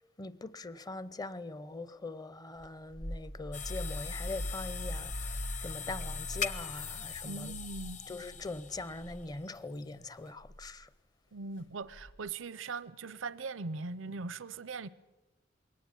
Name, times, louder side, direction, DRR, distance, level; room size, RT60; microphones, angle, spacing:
voice 1, 0.2-7.6 8.1-10.9, left 2 dB, 20° left, 0.6 m, -42 dB
sound 1, 2.6-8.5 8.9-9.2 10.4-10.7 11.9-12.3, equal, 70° left, 1.4 m, -41 dB
sound 2, 3.5-10.3, left 7 dB, 40° left, 1.0 m, -42 dB
voice 2, 7.2-8.0 11.3-14.9, right 4 dB, 80° right, 0.7 m, -40 dB
22.0 x 18.5 x 9.0 m
head